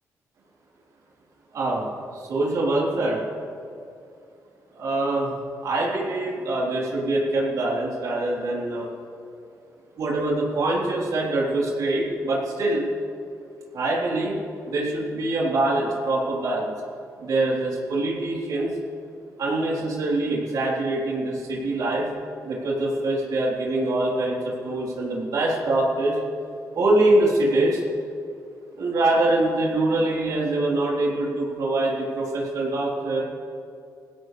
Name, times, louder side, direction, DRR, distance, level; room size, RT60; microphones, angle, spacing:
voice 1, 1.5-1.9 2.1-3.2 4.7-5.3 5.6-8.9 10.0-12.8 13.7-14.4 14.7-16.7 17.2-18.7 19.4-22.1 22.4-26.2 26.8-27.8 28.8-33.2, right 2 dB, 65° right, -4 dB, 3.6 m, -24 dB
21.0 x 16.5 x 3.3 m, 2.5 s
wide cardioid pair, 160°, 6 cm